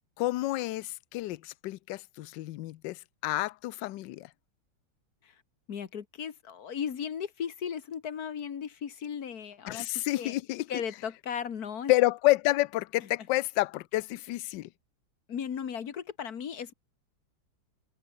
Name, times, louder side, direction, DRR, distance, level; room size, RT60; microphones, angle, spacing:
voice 1, 0.2-4.3 9.7-10.7 11.9-14.7, left 17 dB, 70° left, 1.1 m, -29 dB
voice 2, 5.7-10.4 10.7-11.9 15.3-16.7, left 7 dB, 50° left, 1.7 m, -36 dB
omnidirectional pair, 2.4 m